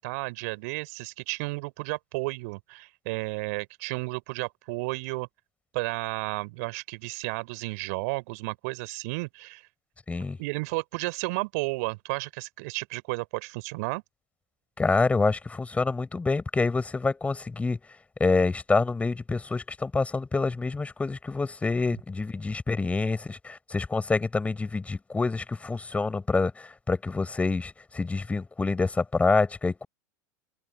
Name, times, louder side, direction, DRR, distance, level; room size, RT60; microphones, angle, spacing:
voice 1, 0.0-5.3 5.7-9.6 10.4-14.0, right 26 dB, 55° right, 3.9 m, -32 dB
voice 2, 14.8-17.8 18.2-29.9, left 3 dB, 15° left, 5.1 m, -27 dB
figure-of-eight pair, 80°, 10 cm